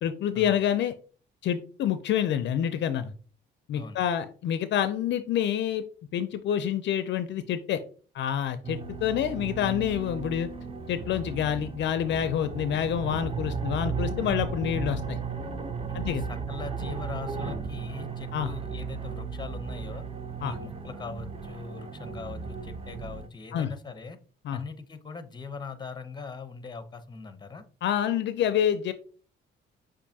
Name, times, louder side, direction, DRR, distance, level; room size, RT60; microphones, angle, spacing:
voice 1, 0.0-0.9 1.4-3.1 3.7-5.8 6.1-7.8 8.1-10.5 10.9-15.2 15.9-16.2 18.3-18.5 20.4-20.6 23.5-23.7 24.4-24.6 27.8-28.9, left 9 dB, 65° left, 12 dB, 0.4 m, -27 dB
sound 1, 8.6-23.3, right 5 dB, 30° right, 0.5 m, -35 dB
voice 2, 15.9-20.0 20.4-24.2 24.5-27.6, left 4 dB, 20° left, 10 dB, 0.7 m, -41 dB
6.7 x 2.5 x 2.8 m, 0.40 s
cardioid pair, 90°, 20 cm